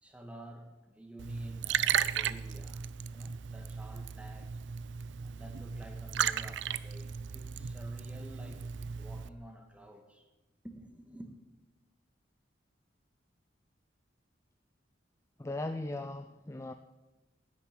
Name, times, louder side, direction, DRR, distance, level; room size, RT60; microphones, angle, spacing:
voice 1, 0.0-4.6 5.2-8.6 9.0-10.3 10.6-11.3, right 1 dB, 5° right, 1.6 m, -50 dB
Liquid, 1.2-9.3, right 8 dB, 70° right, 0.5 m, -35 dB
voice 2, 15.4-16.7, left 2 dB, 15° left, 0.4 m, -38 dB
10.5 x 9.6 x 8.9 m
head